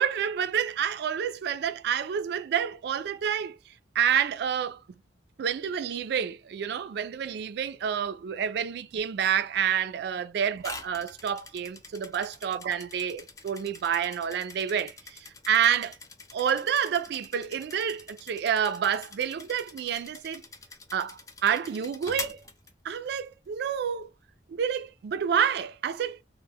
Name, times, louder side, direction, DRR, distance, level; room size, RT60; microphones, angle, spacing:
voice 1, 0.0-3.6 4.0-4.8 5.4-16.0 16.3-20.4 20.9-22.4 22.8-24.1 24.5-26.2, right 8 dB, 65° right, 0.3 m, -28 dB
sound 1, 10.6-23.3, left 3 dB, 20° left, 0.4 m, -45 dB
2.1 x 2.0 x 3.4 m
head